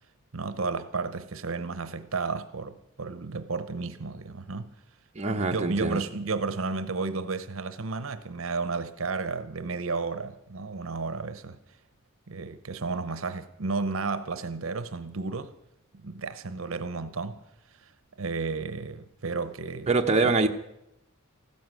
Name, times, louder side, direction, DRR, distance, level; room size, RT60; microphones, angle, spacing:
voice 1, 0.3-4.7 5.3-11.6 12.3-15.5 16.0-17.4 17.8-17.9 18.2-19.9 20.2-20.3, right 4 dB, 65° right, 0.8 m, -32 dB
voice 2, 5.1-6.0 19.9-20.5, right 3 dB, 30° right, 0.9 m, -24 dB
15.0 x 13.0 x 6.2 m
head